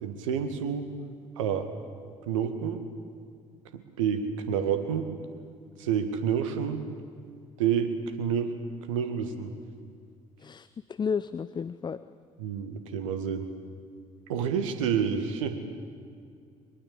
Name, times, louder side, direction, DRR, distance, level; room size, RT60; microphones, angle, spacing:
voice 1, 0.0-0.9 1.4-1.7 2.2-2.8 3.7-5.1 5.8-6.9 7.6-8.5 8.9-9.5 12.4-13.5 14.3-15.6, right 7 dB, 70° right, 8 dB, 1.8 m, -29 dB
voice 2, 10.4-12.1, left 6 dB, 25° left, 15 dB, 0.6 m, -32 dB
23.0 x 22.0 x 8.5 m, 2.3 s
figure-of-eight pair, 50°, 17 cm